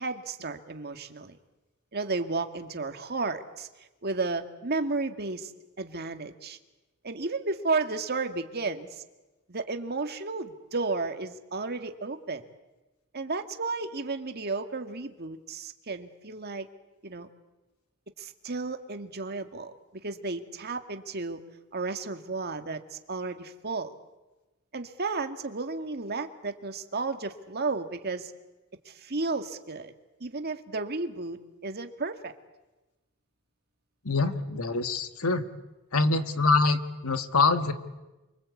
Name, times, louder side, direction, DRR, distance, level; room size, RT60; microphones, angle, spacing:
voice 1, 0.0-1.4 1.9-5.5 5.8-6.6 7.0-9.0 9.5-12.4 13.1-16.7 17.0-17.3 18.2-21.4 21.7-23.9 24.7-28.3 28.9-29.9 30.2-32.3, right 3 dB, 50° right, 7 dB, 1.9 m, -33 dB
voice 2, 34.1-35.5 35.9-37.7, left 3 dB, 85° left, 9 dB, 1.9 m, -25 dB
29.0 x 24.0 x 8.4 m, 1.1 s
head